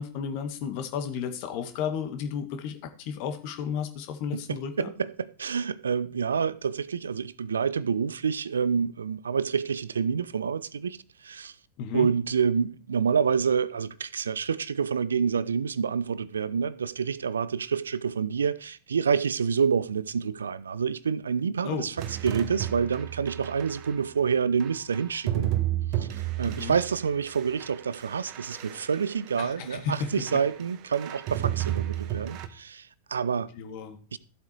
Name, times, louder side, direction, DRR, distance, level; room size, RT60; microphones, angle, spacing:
voice 1, 0.0-4.9 11.8-12.1 21.6-21.9 26.4-26.8 29.4-30.4 33.5-34.0, left 7 dB, 45° left, 2.1 m, -33 dB
voice 2, 4.3-11.0 11.2-11.5 11.9-25.5 26.0-33.5 34.1-34.2, right 6 dB, 70° right, 0.7 m, -28 dB
sound 1, 22.0-24.0 24.6-29.6 29.9-30.6 30.9-32.5, right 13 dB, 40° right, 1.5 m, -32 dB
14.0 x 8.1 x 4.6 m
figure-of-eight pair, 90°, 0 cm